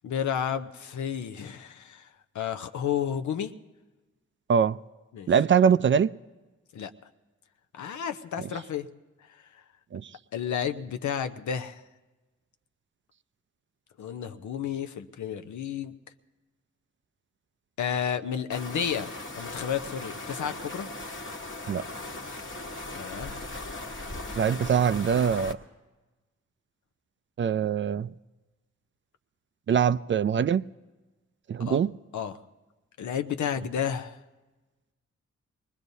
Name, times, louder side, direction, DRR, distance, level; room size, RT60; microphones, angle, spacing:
voice 1, 0.0-2.1 2.3-3.5 5.1-5.3 6.7-6.9 7.7-8.9 10.3-11.8 14.0-15.9 17.8-20.9 23.0-23.4 31.6-31.8 32.1-32.4 33.0-34.2, left 8 dB, 80° left, 8 dB, 0.7 m, -31 dB
voice 2, 5.3-6.1 9.9-10.1 21.7-21.8 24.4-25.6 27.4-28.1 29.7-30.7 31.5-31.9, right 7 dB, 45° right, 16 dB, 0.4 m, -23 dB
sound 1, 18.5-25.5, left 2 dB, 40° left, 1.3 m, -38 dB
23.5 x 19.5 x 2.7 m, 1.2 s
cardioid pair, 45°, 29 cm